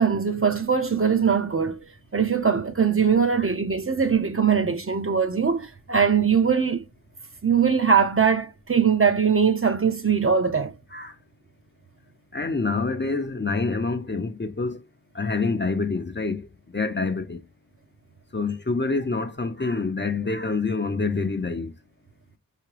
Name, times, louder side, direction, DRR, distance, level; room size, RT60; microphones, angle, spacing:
voice 1, 0.0-1.8 2.1-6.8 7.4-10.7, right 6 dB, 40° right, 0.7 m, -21 dB
voice 2, 12.3-14.8 15.1-16.5 16.7-17.4 18.3-21.7, left 4 dB, 30° left, 0.6 m, -26 dB
4.8 x 2.8 x 3.2 m
wide cardioid pair, 50°, 36 cm